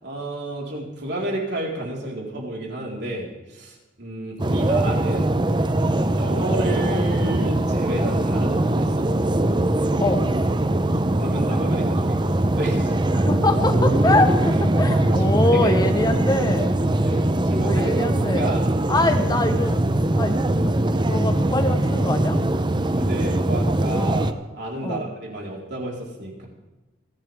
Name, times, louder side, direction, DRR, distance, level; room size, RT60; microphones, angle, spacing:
voice 1, 0.0-5.3 6.1-9.1 10.9-13.0 14.5-16.1 16.4-16.5 17.0-17.9 18.4-18.7 19.2-19.3 22.9-26.5, right 1 dB, 60° right, -2 dB, 4.2 m, -31 dB
Green Park, 4.4-24.3, right 1 dB, 25° right, 0.7 m, -21 dB
voice 2, 13.1-16.7 17.6-18.5 18.9-19.8 20.2-20.3 21.1-22.4 24.8-25.1, left 2 dB, 20° left, 7 dB, 1.1 m, -23 dB
29.5 x 11.0 x 3.6 m, 1.1 s
head